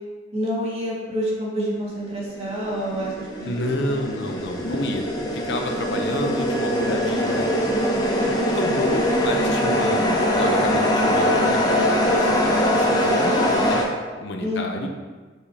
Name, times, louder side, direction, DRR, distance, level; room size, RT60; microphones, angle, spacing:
voice 1, 0.3-3.5 3.8-3.9 14.4-14.9, equal, 35° right, -5 dB, 1.9 m, -28 dB
sound 1, 2.3-13.8, equal, 20° left, 0.9 m, -22 dB
voice 2, 3.5-5.0 5.3-7.5 8.2-13.8 14.2-14.9, left 1 dB, 70° left, 3 dB, 0.7 m, -29 dB
6.9 x 6.3 x 2.8 m, 1.4 s
head